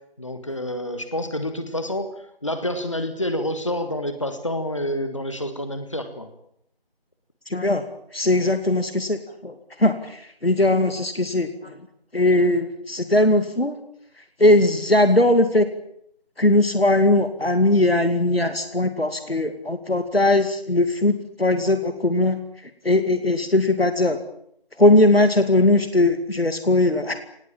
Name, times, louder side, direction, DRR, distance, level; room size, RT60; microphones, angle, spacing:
voice 1, 0.2-6.3, left 1 dB, 30° left, 9 dB, 1.6 m, -28 dB
voice 2, 7.5-7.8 8.1-11.7 12.1-13.8 14.4-15.7 16.4-22.4 22.8-24.2 24.8-27.2, left 1 dB, 75° left, 8 dB, 2.4 m, -19 dB
24.5 x 19.0 x 8.7 m, 0.73 s
figure-of-eight pair, 170°, 30 cm